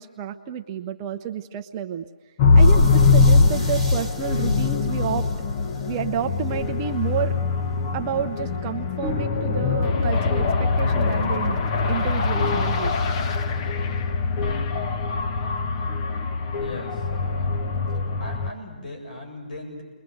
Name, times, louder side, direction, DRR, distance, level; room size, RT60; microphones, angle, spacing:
voice 1, 0.0-2.1 2.5-5.3 5.9-7.4 7.9-11.6 11.9-13.0, right 8 dB, 25° right, 6 dB, 0.7 m, -30 dB
sound 1, 2.4-18.5, left 4 dB, 30° left, 1.0 m, -22 dB
sound 2, 2.6-6.6, right 1 dB, 10° left, 1.8 m, -43 dB
voice 2, 16.6-17.6 18.2-19.8, left 1 dB, 60° left, 3 dB, 7.7 m, -38 dB
29.5 x 22.0 x 7.9 m, 1.3 s
hypercardioid pair, 155°, 5 cm